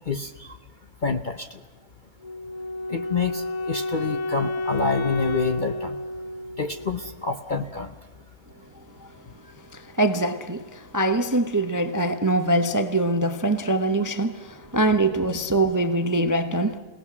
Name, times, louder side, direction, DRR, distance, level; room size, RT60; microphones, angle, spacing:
voice 1, 0.1-0.6 1.0-1.5 2.9-6.0 6.6-7.9, left 4 dB, 40° left, 0.7 m, -27 dB
Wind instrument woodwind instrument, 2.2-7.3, left 2 dB, 70° left, 1.8 m, -30 dB
voice 2, 9.7-16.8, right 2 dB, 20° right, 0.6 m, -23 dB
28.0 x 18.0 x 6.1 m
omnidirectional pair, 1.7 m